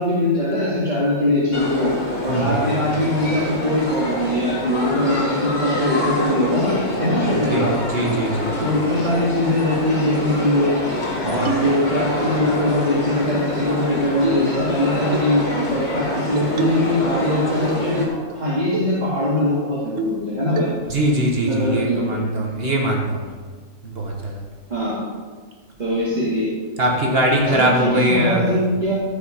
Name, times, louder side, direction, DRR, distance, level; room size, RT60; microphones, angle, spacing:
voice 1, 0.0-2.0 2.2-7.8 8.6-10.7 11.2-20.7 21.5-22.2 24.7-25.0 25.8-26.5 27.5-29.0, left 1 dB, 30° right, -9 dB, 2.3 m, -21 dB
sound 1, 1.5-18.1, left 1 dB, 35° left, 1.8 m, -26 dB
voice 2, 2.3-2.7 7.5-8.6 11.2-11.5 20.9-23.3 23.8-24.4 26.8-28.6, right 1 dB, 45° right, 0 dB, 1.6 m, -21 dB
sound 2, 9.1-9.2 9.7-9.9 10.3-10.4 10.7-11.1 11.5-12.2 13.2-13.9 14.2-14.5 15.1-15.3 16.4-17.0 17.3-18.0 18.3-18.4 18.7-19.0 19.4-19.5 20.0-20.3 20.6-21.0, right 2 dB, 70° right, 1.2 m, -28 dB
14.0 x 5.7 x 5.2 m, 1.5 s
omnidirectional pair, 1.4 m